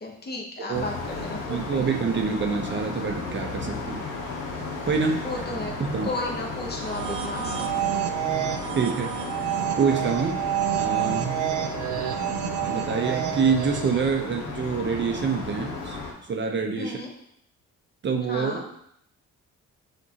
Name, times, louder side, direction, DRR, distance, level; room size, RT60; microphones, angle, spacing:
voice 1, 0.0-1.8 5.2-5.7 6.0-7.5 16.8-17.1 18.3-18.6, left 2 dB, 35° left, 0 dB, 1.0 m, -33 dB
sound 1, 0.7-16.1, left 3 dB, 80° left, 0.9 m, -34 dB
voice 2, 1.5-4.0 4.8-5.4 5.8-6.1 8.8-9.1 9.8-10.4 10.8-11.4 12.6-16.0 16.3-17.0 18.0-18.6, right 5 dB, 40° right, 2 dB, 0.6 m, -26 dB
sound 2, 6.7-14.1, right 11 dB, 80° right, 0.5 m, -29 dB
6.3 x 2.6 x 2.8 m, 0.73 s
cardioid pair, 90°, 30 cm